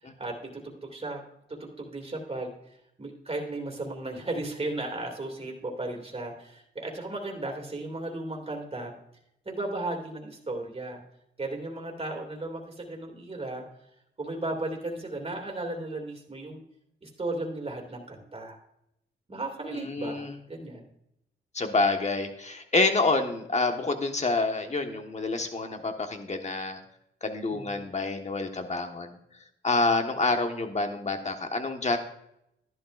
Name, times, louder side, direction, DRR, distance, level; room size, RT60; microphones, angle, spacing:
voice 1, 0.0-1.2 1.5-2.5 3.0-8.9 9.5-11.0 11.4-13.6 14.2-16.6 17.0-18.6 19.3-20.9 27.5-27.8, right 2 dB, 30° right, 1 dB, 2.3 m, -35 dB
voice 2, 19.7-20.3 21.5-26.8 27.2-29.2 29.6-32.0, left 3 dB, 35° left, 5 dB, 1.4 m, -27 dB
12.5 x 11.0 x 2.5 m, 0.79 s
cardioid pair, 70°, 20 cm